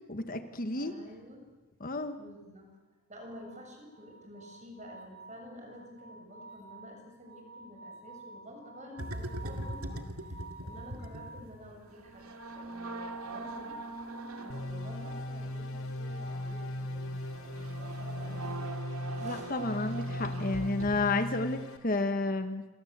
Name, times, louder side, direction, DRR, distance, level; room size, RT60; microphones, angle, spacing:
voice 1, 0.1-0.9 1.8-2.2 19.2-22.7, left 2 dB, 40° left, 9 dB, 1.2 m, -31 dB
voice 2, 0.7-1.5 2.2-2.8 3.1-10.3 10.6-13.8 14.3-18.6 19.1-19.5, equal, 30° right, 3 dB, 6.8 m, -50 dB
sound 1, 3.4-11.5 12.8-14.1 14.8-16.8 18.0-19.3, right 2 dB, 60° right, 4.5 m, -51 dB
sound 2, 9.0-21.1, right 2 dB, 75° right, 2.3 m, -42 dB
sound 3, 14.5-21.8, left 1 dB, 65° left, 3.2 m, -38 dB
29.0 x 24.0 x 8.1 m, 1.2 s
head